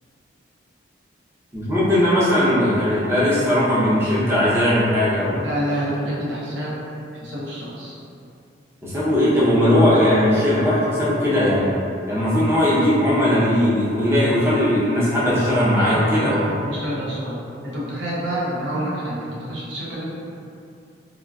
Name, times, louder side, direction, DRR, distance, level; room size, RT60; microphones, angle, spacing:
voice 1, 1.5-5.4 8.8-11.7 12.1-16.6, left 1 dB, 15° right, -10 dB, 0.6 m, -18 dB
voice 2, 5.3-6.7 7.2-8.0 15.8-17.4 17.6-20.1, equal, 70° right, -7 dB, 0.7 m, -28 dB
3.6 x 2.4 x 2.3 m, 2.5 s
head